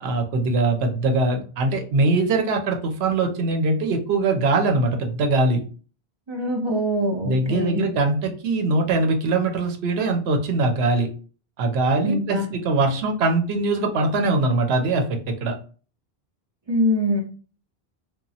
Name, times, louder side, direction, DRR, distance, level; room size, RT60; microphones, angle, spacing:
voice 1, 0.0-5.6 7.2-11.1 11.6-15.5, right 3 dB, 85° right, 4 dB, 0.8 m, -22 dB
voice 2, 6.3-7.8 12.0-12.4 16.7-17.2, equal, 35° right, 0 dB, 0.5 m, -23 dB
2.9 x 2.1 x 2.6 m, 0.39 s
omnidirectional pair, 1.0 m